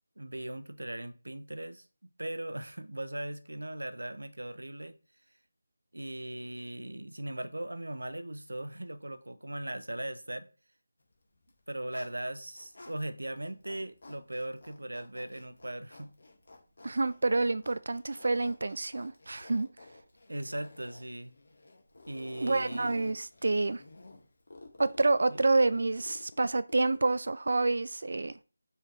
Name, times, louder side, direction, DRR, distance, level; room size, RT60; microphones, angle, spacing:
voice 1, 0.2-1.8 2.2-5.0 5.9-10.5 11.7-16.1 20.3-21.3 22.1-22.9 25.3-25.4, right 1 dB, 75° right, 0.8 m, -39 dB
Zipper (clothing), 11.4-13.0 13.4-27.1, left 2 dB, 50° left, 1.9 m, -51 dB
voice 2, 16.8-19.7 22.4-23.8 24.8-28.3, right 3 dB, 55° right, 0.3 m, -28 dB
6.6 x 4.6 x 3.4 m
figure-of-eight pair, 160°, 0 cm